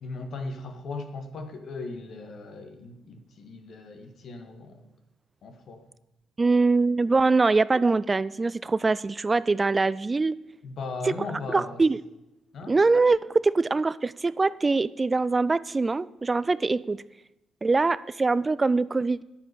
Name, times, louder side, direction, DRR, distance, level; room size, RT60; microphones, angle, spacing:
voice 1, 0.0-4.8 5.4-5.8 10.6-11.8 12.5-12.8, left 3 dB, 60° left, 7 dB, 1.8 m, -38 dB
voice 2, 6.4-10.3 11.0-11.1 11.5-12.0 12.7-17.0 17.6-19.2, right 3 dB, 25° right, 18 dB, 0.3 m, -23 dB
10.5 x 9.0 x 6.9 m, 0.93 s
cardioid pair, 90°, 0 cm